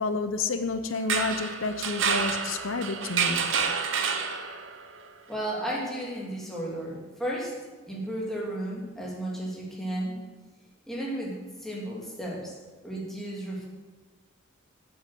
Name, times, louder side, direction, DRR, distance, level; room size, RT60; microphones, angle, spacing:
voice 1, 0.0-3.7, left 3 dB, 85° left, 0.8 m, -30 dB
sound 1, 0.9-4.8, right 5 dB, 70° right, 0.9 m, -28 dB
voice 2, 5.3-7.5 7.9-10.2 10.9-13.7, right 1 dB, ahead, 2.8 m, -34 dB
8.8 x 8.0 x 7.4 m
head